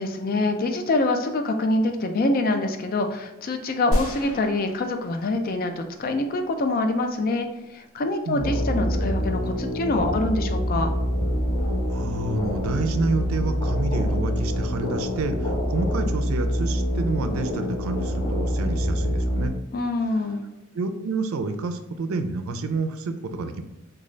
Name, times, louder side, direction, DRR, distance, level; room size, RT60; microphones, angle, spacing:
voice 1, 0.0-10.9 19.7-20.4, left 2 dB, 45° left, 6 dB, 0.4 m, -25 dB
sound 1, 3.9-5.8 6.2-6.3, equal, 75° left, 0.9 m, -30 dB
voice 2, 8.3-8.7 11.9-19.5 20.7-23.6, right 3 dB, 85° right, 8 dB, 0.4 m, -29 dB
sound 2, 8.4-19.5, equal, 25° left, 0.8 m, -25 dB
3.7 x 2.3 x 3.2 m, 0.90 s
head